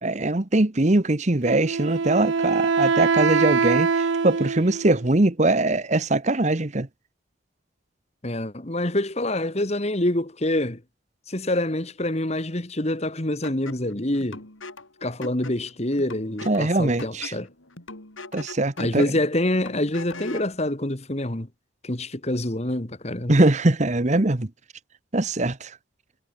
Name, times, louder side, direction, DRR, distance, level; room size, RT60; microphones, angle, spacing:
voice 1, 0.0-6.9 16.5-17.3 18.3-19.0 23.3-24.5 25.1-25.8, right 2 dB, 35° right, 1.0 m, -22 dB
Wind instrument woodwind instrument, 1.4-5.1, right 5 dB, 70° right, 0.6 m, -23 dB
voice 2, 8.2-10.8 11.3-14.4 15.0-17.5 18.8-21.5 21.8-23.3, left 1 dB, 35° left, 1.7 m, -26 dB
sound 1, 13.4-20.6, left 2 dB, 85° left, 4.7 m, -41 dB
head